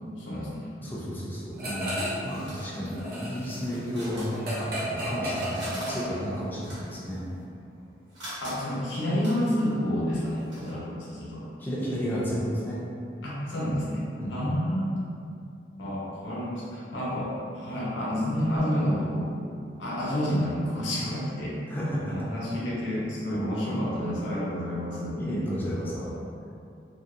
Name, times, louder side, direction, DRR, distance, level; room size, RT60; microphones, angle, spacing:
voice 1, 0.2-0.8 8.4-11.4 13.2-15.0 15.8-19.3 19.8-21.6 22.1-25.2, equal, 90° left, -7 dB, 0.7 m, -29 dB
voice 2, 0.8-7.2 11.6-12.8 14.2-14.4 21.7-22.2 25.2-26.2, equal, 10° left, -8 dB, 0.3 m, -32 dB
sound 1, 1.6-2.3 2.6-6.5, equal, 55° right, 0.6 m, -33 dB
sound 2, 1.6-5.0 5.2-10.7, right 1 dB, 90° right, 1.2 m, -44 dB
2.6 x 2.1 x 2.4 m, 2.5 s
head